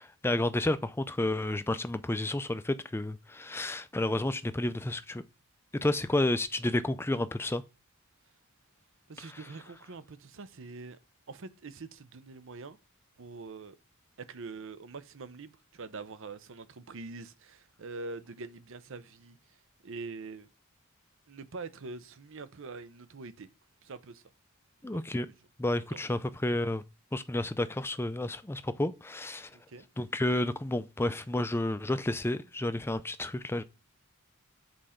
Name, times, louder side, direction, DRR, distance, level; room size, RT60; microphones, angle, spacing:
voice 1, 0.0-5.2 5.8-7.6 9.2-9.4 24.8-25.3 25.6-26.8 27.1-29.5 30.0-33.6, left 1 dB, 10° left, 0.4 m, -31 dB
voice 2, 9.1-11.0 11.3-12.8 13.2-13.8 14.2-19.4 19.8-20.5 21.3-23.5 23.8-24.2 24.8-25.2 25.9-26.0 29.5-29.9, right 3 dB, 60° right, 0.7 m, -44 dB
7.9 x 4.3 x 5.0 m
head